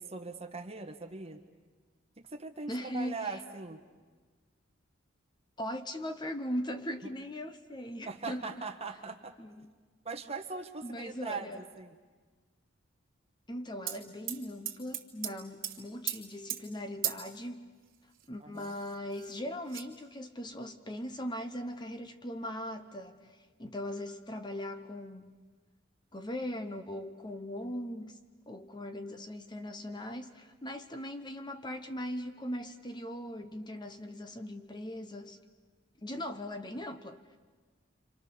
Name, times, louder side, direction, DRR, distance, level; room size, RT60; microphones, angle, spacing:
voice 1, 0.0-1.4 2.3-3.8 7.0-7.1 8.0-9.3 10.0-12.0 18.4-18.7, right 4 dB, 30° right, 6 dB, 1.6 m, -40 dB
voice 2, 2.7-3.4 5.6-8.6 9.4-9.7 10.8-11.6 13.5-17.7 18.3-25.4 26.1-28.2 28.5-35.4 36.0-37.4, equal, 20° left, 8 dB, 1.0 m, -39 dB
sound 1, 13.9-14.0 14.3-15.3 15.6-15.8 16.1-16.2 16.5-16.6 17.0-17.3 18.2-18.3 18.6-19.3 19.7-19.8, right 12 dB, 45° right, 2.9 m, -36 dB
29.5 x 26.0 x 7.0 m, 1.4 s
head